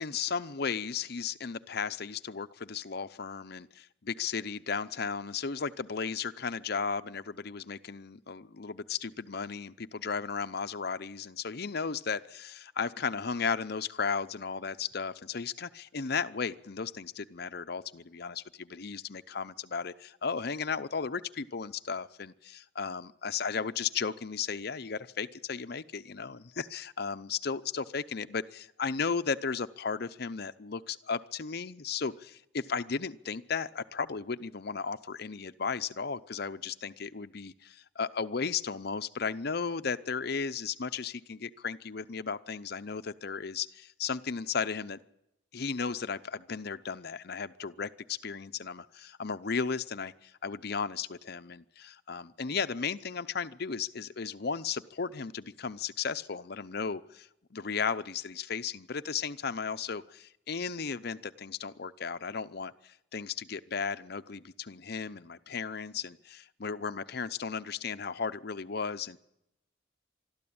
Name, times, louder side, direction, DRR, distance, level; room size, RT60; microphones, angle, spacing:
voice 1, 0.0-45.0 45.5-69.2, left 5 dB, 55° left, 11 dB, 0.7 m, -35 dB
23.5 x 13.0 x 8.7 m, 0.83 s
head